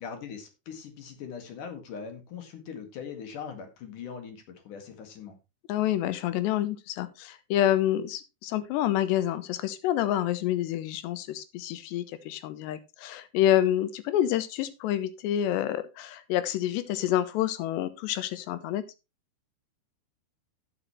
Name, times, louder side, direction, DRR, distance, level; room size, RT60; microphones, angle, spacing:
voice 1, 0.0-5.4, left 6 dB, 55° left, 7 dB, 3.2 m, -41 dB
voice 2, 5.7-18.8, left 12 dB, 85° left, 13 dB, 3.1 m, -28 dB
12.5 x 9.2 x 3.1 m, 0.26 s
omnidirectional pair, 4.8 m